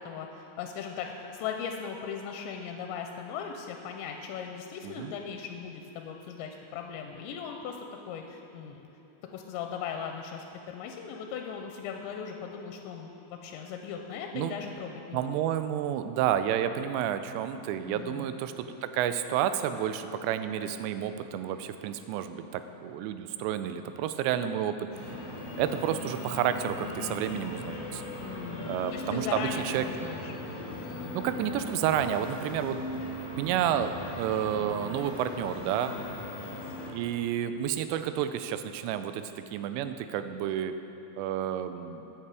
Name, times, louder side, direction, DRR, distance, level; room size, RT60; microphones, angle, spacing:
voice 1, 0.0-7.8 8.1-8.9 9.3-15.4 17.9-18.3 28.2-30.4, left 7 dB, 90° left, 3 dB, 2.9 m, -38 dB
voice 2, 15.1-24.9 25.6-28.0 28.7-29.9 31.1-33.0 33.4-35.9 36.9-40.7 41.2-42.1, right 10 dB, 85° right, 10 dB, 2.7 m, -30 dB
sound 1, 24.9-36.9, left 1 dB, 55° left, 3.4 m, -39 dB
14.5 x 8.7 x 4.8 m, 3.0 s
omnidirectional pair, 5.1 m